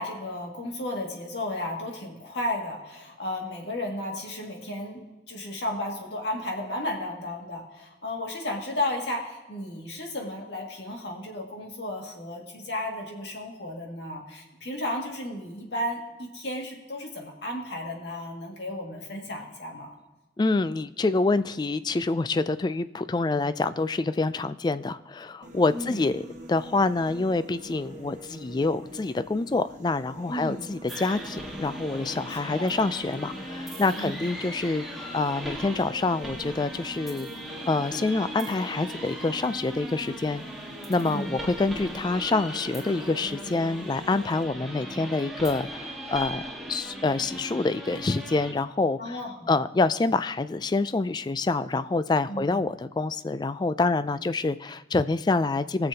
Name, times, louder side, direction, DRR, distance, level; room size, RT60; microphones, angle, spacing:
voice 1, 0.0-20.0 25.7-26.1 30.3-30.7 32.3-32.7 33.9-34.3 41.0-41.4 49.0-49.5 52.3-52.6, left 1 dB, 80° left, 0 dB, 2.1 m, -34 dB
voice 2, 20.4-34.8 35.1-40.4 40.9-46.4 46.7-49.2 49.5-55.9, left 3 dB, 25° left, 14 dB, 0.3 m, -26 dB
sound 1, 25.4-44.4, equal, 45° right, 1.3 m, -45 dB
sound 2, 30.9-48.5, equal, ahead, 1.5 m, -39 dB
21.0 x 6.9 x 2.8 m, 1.1 s
head